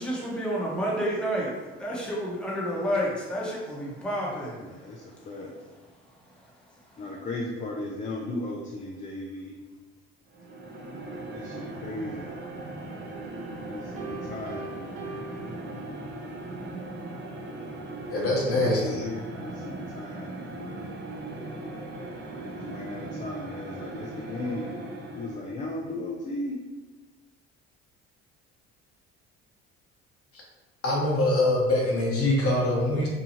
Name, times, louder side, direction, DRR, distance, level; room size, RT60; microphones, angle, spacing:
voice 1, 0.0-5.3 6.2-7.0, equal, 5° left, -5 dB, 0.9 m, -31 dB
voice 2, 4.6-5.6 7.0-9.6 11.3-12.3 13.7-14.9 17.5-17.7 18.7-20.9 22.4-24.8 25.1-26.6, left 2 dB, 25° left, -2 dB, 0.4 m, -36 dB
sound 1, 10.3-25.6, right 2 dB, 35° right, 0.6 m, -38 dB
Piano, 14.0-16.4, right 2 dB, 80° right, 0.6 m, -42 dB
voice 3, 18.1-19.1 30.3-30.4 30.8-33.1, left 1 dB, 45° left, -3 dB, 1.0 m, -24 dB
2.8 x 2.3 x 2.9 m, 1.2 s
hypercardioid pair, 65°, 32 cm